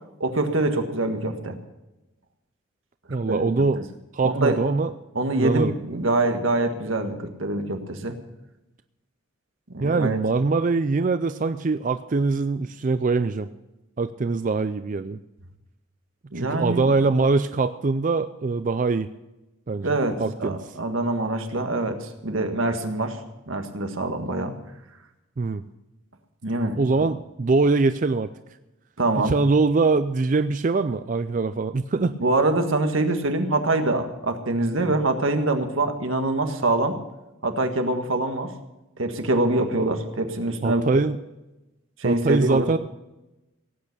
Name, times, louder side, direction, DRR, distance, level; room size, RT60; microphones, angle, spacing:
voice 1, 0.2-1.6 3.3-3.5 4.2-4.6 5.1-8.1 9.7-10.2 16.3-16.9 19.8-23.2 23.5-24.5 26.4-27.1 29.0-29.3 32.0-37.0 37.4-38.5 39.0-40.8 42.0-42.7, right 2 dB, 85° right, 6 dB, 1.6 m, -24 dB
voice 2, 3.1-3.8 4.1-4.9 5.3-5.7 9.8-13.5 14.0-15.2 16.4-19.1 19.7-20.6 25.4-25.6 26.8-28.3 29.2-32.2 40.6-41.2 42.0-42.8, right 3 dB, 40° right, 11 dB, 0.4 m, -23 dB
17.5 x 8.5 x 6.7 m, 0.98 s
head